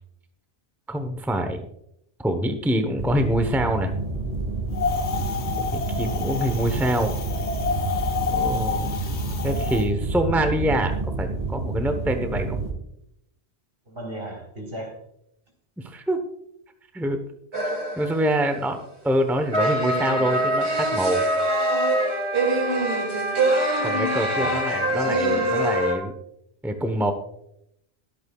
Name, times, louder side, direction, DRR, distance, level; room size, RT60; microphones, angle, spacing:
voice 1, 0.9-1.7 2.2-3.9 5.6-7.1 8.3-9.0 9.4-12.6 15.8-16.2 16.9-17.2 18.0-21.2 23.8-26.1 26.6-27.1, right 1 dB, ahead, 6 dB, 0.8 m, -25 dB
sound 1, 3.0-12.7, right 3 dB, 35° right, 1.9 m, -29 dB
Wind, 4.7-9.8, left 6 dB, 80° left, 1.5 m, -29 dB
voice 2, 5.1-5.6 13.9-15.0 24.3-24.6, right 1 dB, 60° right, 0 dB, 4.0 m, -36 dB
sound 2, 17.5-18.3 19.5-25.9, right 1 dB, 75° right, 2.7 m, -23 dB
22.0 x 8.6 x 2.3 m, 0.77 s
omnidirectional pair, 1.1 m